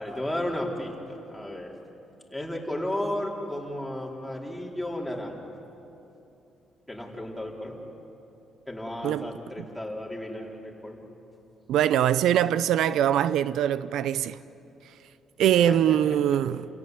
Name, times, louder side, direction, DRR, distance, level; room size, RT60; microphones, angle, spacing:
voice 1, 0.0-1.7 2.3-5.4 6.9-7.8 8.7-11.0 15.5-16.2, left 1 dB, 5° left, 4.3 m, -33 dB
voice 2, 11.7-14.4 15.4-16.7, right 10 dB, 80° right, 0.5 m, -23 dB
30.0 x 17.0 x 8.2 m
cardioid pair, 90°, 0 cm